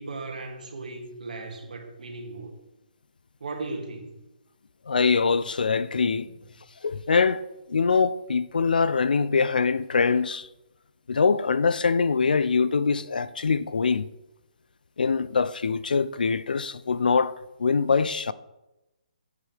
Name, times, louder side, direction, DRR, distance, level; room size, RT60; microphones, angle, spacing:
voice 1, 0.0-2.5 3.4-4.1, right 3 dB, 65° right, 2.0 m, -36 dB
voice 2, 4.9-6.3 6.8-10.5 11.1-14.1 15.0-18.3, left 5 dB, 85° left, 0.5 m, -23 dB
9.2 x 8.1 x 3.4 m
hypercardioid pair, 170°, 5 cm